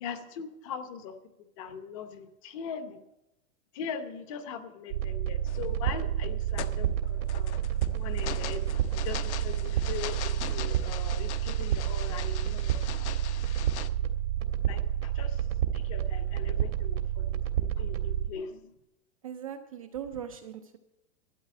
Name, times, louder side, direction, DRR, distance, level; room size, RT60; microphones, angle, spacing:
voice 1, 0.0-1.2 1.6-3.0 3.7-13.1 13.4-13.6 14.7-15.5 15.7-18.7, left 7 dB, 25° left, 9 dB, 0.8 m, -41 dB
sound 1, 4.9-18.3, right 10 dB, 75° right, 1.7 m, -29 dB
sound 2, 5.5-5.8 6.2-13.9, left 11 dB, 55° left, 0.9 m, -41 dB
voice 2, 19.2-20.8, right 9 dB, 30° right, 6 dB, 0.4 m, -39 dB
13.0 x 9.1 x 7.0 m, 0.90 s
supercardioid pair, 175°, 40 cm